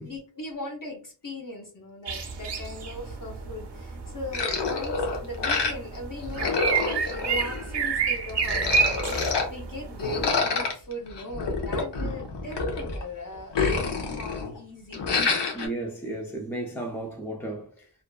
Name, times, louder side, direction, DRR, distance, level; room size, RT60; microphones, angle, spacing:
voice 1, 0.0-13.6 14.1-15.2, left 1 dB, 50° left, 0.7 m, -39 dB
sound 1, 2.1-10.3, right 5 dB, 80° right, 0.5 m, -29 dB
sound 2, 4.3-6.0 6.2-7.9 8.3-9.5 10.0-13.0 13.3-14.6 14.9-15.7, left 4 dB, 85° left, 0.6 m, -28 dB
voice 2, 15.5-17.9, right 2 dB, 5° left, 0.4 m, -34 dB
2.4 x 2.2 x 2.3 m
wide cardioid pair, 60°, 41 cm